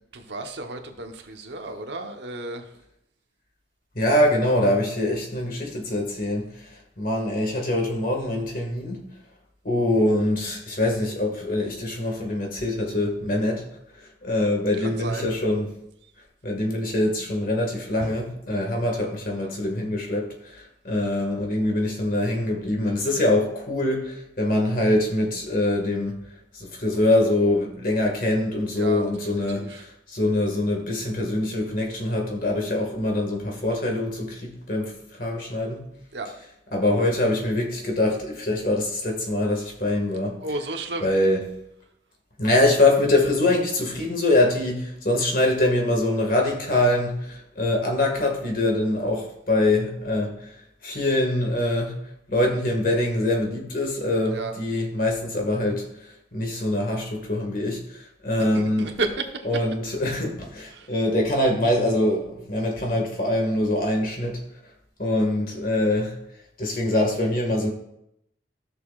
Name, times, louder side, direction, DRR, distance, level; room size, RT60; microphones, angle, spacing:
voice 1, 0.0-2.6 14.8-15.3 28.7-29.1 29.3-29.8 36.1-36.3 40.4-41.1 54.3-54.5 58.5-59.5 60.7-60.9, right 2 dB, 80° right, 4 dB, 1.1 m, -32 dB
voice 2, 4.0-6.5 7.0-9.0 9.7-13.6 14.2-15.7 16.4-20.2 20.5-26.2 26.6-29.8 30.1-34.9 35.2-35.8 36.7-40.4 41.0-41.5 42.4-50.3 50.8-51.9 52.3-55.8 56.3-57.8 58.2-58.9 59.4-64.4 65.0-66.1 66.6-67.7, left 1 dB, 50° left, 1 dB, 1.9 m, -24 dB
13.5 x 6.7 x 2.5 m, 0.79 s
head